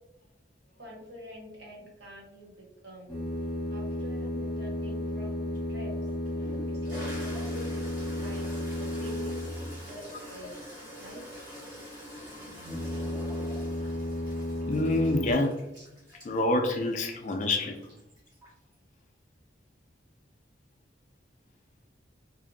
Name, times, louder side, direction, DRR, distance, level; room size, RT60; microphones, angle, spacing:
voice 1, 0.8-2.5 2.8-3.1 3.7-5.9 6.7-7.8 8.1-8.5 8.8-9.3 9.8-10.6 11.0-11.4 15.8-15.9, left 1 dB, 70° right, -3 dB, 0.9 m, -46 dB
sound 1, 3.1-9.9 12.6-15.3, left 1 dB, 5° left, 1.0 m, -33 dB
Toilet flush, 5.5-5.6 6.3-18.7, equal, 25° right, 1.4 m, -45 dB
voice 2, 14.7-15.6 16.2-17.9, left 2 dB, 40° left, 4 dB, 0.3 m, -27 dB
2.6 x 2.4 x 2.5 m, 0.88 s
head